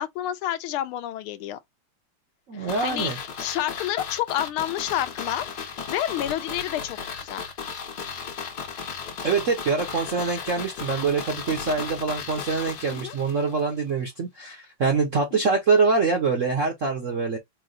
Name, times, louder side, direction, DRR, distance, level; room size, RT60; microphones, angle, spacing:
voice 1, 0.0-1.6 2.5-7.4 12.9-13.2 15.3-15.5, left 12 dB, 80° left, 1.5 m, -30 dB
voice 2, 2.5-3.2 9.2-17.4, right 4 dB, 65° right, 0.7 m, -24 dB
sound 1, 2.7-13.6 13.9-14.0, left 6 dB, 55° left, 1.3 m, -35 dB
4.7 x 2.1 x 3.8 m
omnidirectional pair, 2.4 m